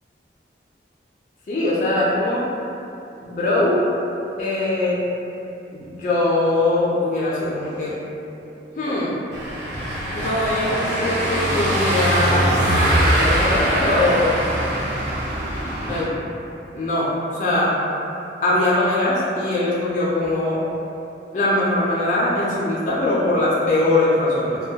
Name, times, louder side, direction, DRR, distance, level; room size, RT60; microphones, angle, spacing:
voice 1, 1.5-2.4 3.2-3.9 4.4-5.0 5.7-8.0 8.8-9.2 10.1-12.5 13.2-14.3 15.8-16.1 16.7-17.1 17.4-17.8 18.4-20.6 21.3-24.6, left 2 dB, 45° left, -7 dB, 0.3 m, -21 dB
Car passing by / Engine, 9.3-16.0, equal, 80° right, 0.6 m, -22 dB
2.1 x 2.1 x 2.7 m, 2.8 s
head